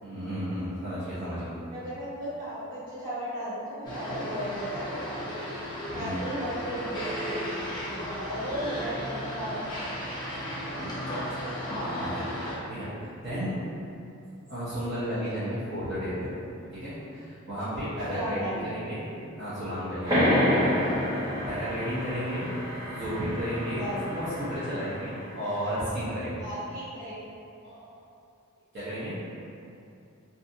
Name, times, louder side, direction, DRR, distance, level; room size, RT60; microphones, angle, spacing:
voice 1, 0.0-1.6 5.9-6.3 10.7-10.9 12.0-12.2 12.7-13.5 14.5-16.3 16.7-19.1 19.4-22.5 22.9-26.4 27.6-28.0 28.7-29.2, equal, 55° right, -15 dB, 0.8 m, -33 dB
voice 2, 1.7-5.4 5.9-7.4 8.2-9.9 18.1-18.7 23.8-24.0 26.4-27.2, equal, 40° right, -14 dB, 1.3 m, -35 dB
sound 1, 3.8-12.6, equal, 20° left, 0.5 m, -34 dB
sound 2, 20.1-25.3, equal, 20° right, 1.2 m, -28 dB
2.6 x 2.4 x 2.6 m, 2.6 s
head